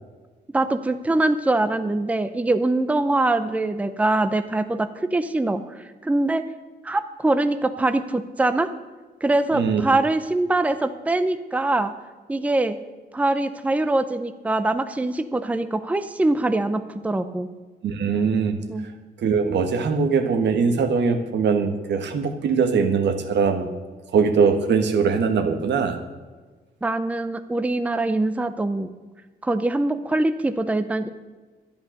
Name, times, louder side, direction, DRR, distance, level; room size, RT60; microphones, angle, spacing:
voice 1, 0.5-6.4 6.8-8.7 9.2-11.9 12.3-12.8 13.1-17.5 18.7-18.9 26.8-28.9 29.4-31.1, right 2 dB, 10° right, 10 dB, 0.6 m, -23 dB
voice 2, 17.8-18.6 19.2-23.7 24.1-26.0, right 5 dB, 85° right, 7 dB, 1.6 m, -21 dB
12.5 x 10.5 x 6.5 m, 1.4 s
wide cardioid pair, 170°, 18 cm